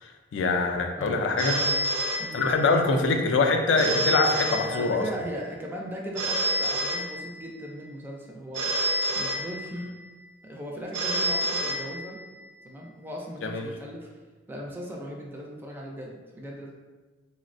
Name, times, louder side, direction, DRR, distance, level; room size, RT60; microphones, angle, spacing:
voice 1, 0.0-1.6 2.3-5.0 13.4-13.7, left 3 dB, 70° left, 4 dB, 0.3 m, -24 dB
voice 2, 1.0-1.8 2.2-2.5 4.6-8.7 9.1-9.9 10.4-12.2 12.6-14.1 14.5-16.7, equal, 10° right, -1 dB, 0.3 m, -38 dB
Telephone, 1.4-2.9 3.8-5.3 6.2-7.7 8.5-10.0 10.9-12.4, right 1 dB, 75° right, 0.5 m, -29 dB
3.9 x 2.1 x 2.5 m, 1.3 s
head